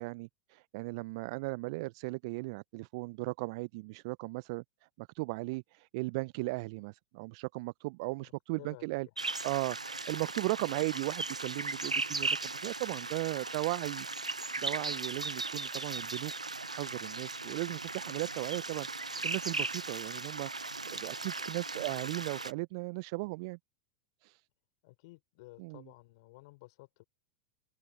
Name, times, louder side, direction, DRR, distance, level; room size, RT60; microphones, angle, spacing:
voice 1, 0.0-4.6 5.0-14.1 14.6-16.3 16.7-18.9 19.2-20.5 20.9-23.6 24.2-24.4 25.6-25.9, right 25 dB, 55° right, 0.7 m, -37 dB
voice 2, 8.6-8.9 24.8-27.0, left 23 dB, 55° left, 5.4 m, -54 dB
sound 1, 9.2-22.5, right 3 dB, 90° right, 0.8 m, -37 dB
figure-of-eight pair, 90°, 4 cm